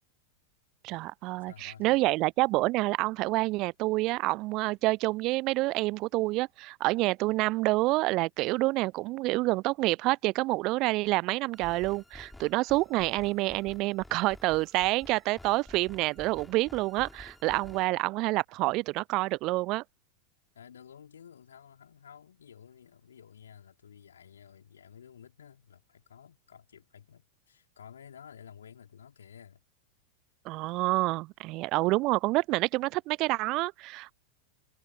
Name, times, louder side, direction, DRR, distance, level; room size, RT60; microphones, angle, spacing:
voice 1, 0.8-19.8 30.5-34.1, right 21 dB, 40° right, 0.4 m, -28 dB
voice 2, 1.4-2.0 20.5-29.6, left 8 dB, 65° left, 4.8 m, -52 dB
sound 1, 11.5-17.9, left 1 dB, 5° left, 4.4 m, -51 dB
figure-of-eight pair, 90°, 0 cm